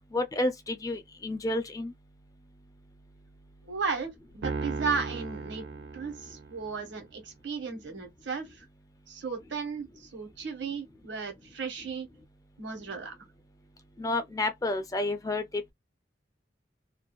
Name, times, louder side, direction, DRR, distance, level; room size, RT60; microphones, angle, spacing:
voice 1, 0.1-1.9 14.0-15.4, left 2 dB, 20° left, 0.4 m, -30 dB
voice 2, 3.6-5.7 5.9-8.6 9.1-12.1 12.6-13.1, right 5 dB, 85° right, 1.2 m, -35 dB
Piano, 4.4-6.9, right 3 dB, 70° right, 0.4 m, -36 dB
2.6 x 2.2 x 2.2 m
head